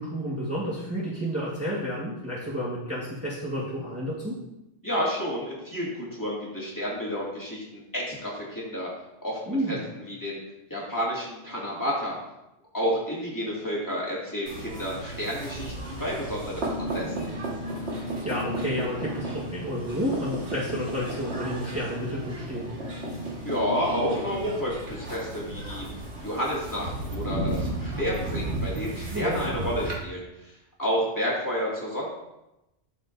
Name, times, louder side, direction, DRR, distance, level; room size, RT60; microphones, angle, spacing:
voice 1, 0.0-4.4 9.5-9.8 18.2-22.7 29.1-29.4, equal, 15° right, -7 dB, 1.4 m, -30 dB
voice 2, 4.8-8.9 9.2-9.8 10.1-10.4 10.7-12.2 12.7-17.3 23.4-25.9 26.2-30.2 30.8-32.1, equal, 20° left, -6 dB, 2.1 m, -30 dB
sound 1, 14.5-30.0, right 1 dB, 85° right, 1.9 m, -34 dB
12.5 x 4.9 x 2.6 m, 0.92 s
omnidirectional pair, 1.1 m